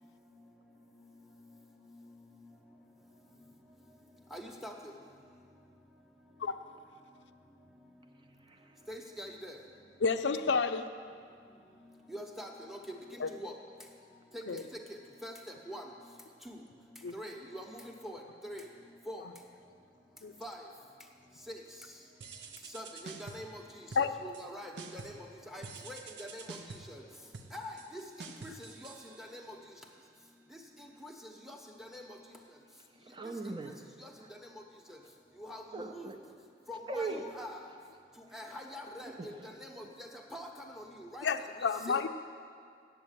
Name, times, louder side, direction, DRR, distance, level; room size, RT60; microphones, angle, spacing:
voice 1, 4.3-4.7 8.9-9.6 12.1-13.0 13.3-13.5 15.2-15.3 15.7-15.9 16.5-16.6 17.1-18.6 19.1-19.2 20.4-20.6 21.5-21.6 22.7-23.6 24.2-25.1 25.5-26.4 26.9-27.0 27.5-28.0 28.4-28.5 28.8-28.9 29.2-29.4 31.0-31.1 31.5-31.6 31.9-32.0 35.4-35.6 35.9-36.1 36.7-37.6 38.3-39.3 39.6-40.5 40.8-41.3 41.9-42.0, equal, ahead, 2 dB, 0.9 m, -44 dB
voice 2, 8.1-8.9 32.8-33.8 34.2-34.3 35.7-36.2 36.9-37.3 38.2-38.3 39.0-39.9, right 3 dB, 25° right, 5 dB, 0.6 m, -41 dB
voice 3, 10.0-10.9 13.2-13.3 14.5-14.6 17.0-17.2 20.2-20.3 23.9-24.1 41.2-42.1, left 5 dB, 85° left, 9 dB, 0.5 m, -30 dB
sound 1, 22.2-23.6 23.9-24.5 24.8-25.3 25.6-29.6, right 4 dB, 90° right, 0.7 m, -48 dB
8.2 x 7.7 x 8.8 m, 2.2 s
head